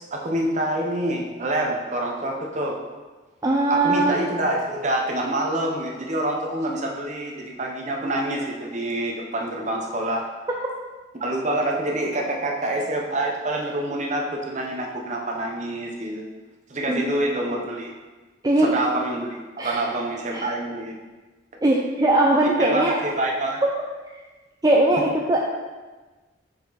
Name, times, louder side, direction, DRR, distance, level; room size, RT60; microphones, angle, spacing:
voice 1, 0.0-2.8 3.7-10.3 11.2-16.2 16.7-17.9 18.6-21.0 22.6-23.6, right 1 dB, 40° right, 0 dB, 0.9 m, -26 dB
voice 2, 3.4-4.1 16.9-17.0 18.4-18.7 19.6-19.8 20.3-20.5 21.6-23.0 24.6-25.4, right 2 dB, 20° right, -1 dB, 0.4 m, -20 dB
5.9 x 5.0 x 4.0 m, 1.3 s
head